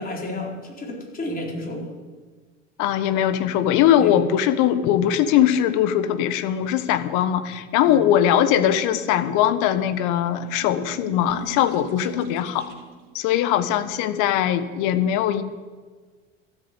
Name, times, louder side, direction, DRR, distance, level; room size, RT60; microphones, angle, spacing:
voice 1, 0.0-1.9 4.0-4.2 7.8-8.1, left 1 dB, 20° left, -1 dB, 4.0 m, -32 dB
voice 2, 2.8-12.7 13.1-15.4, left 10 dB, 50° left, 12 dB, 1.3 m, -21 dB
sound 1, 10.2-13.1, right 6 dB, 65° right, 2.1 m, -41 dB
13.5 x 8.3 x 8.5 m, 1.4 s
hypercardioid pair, 80°, 38 cm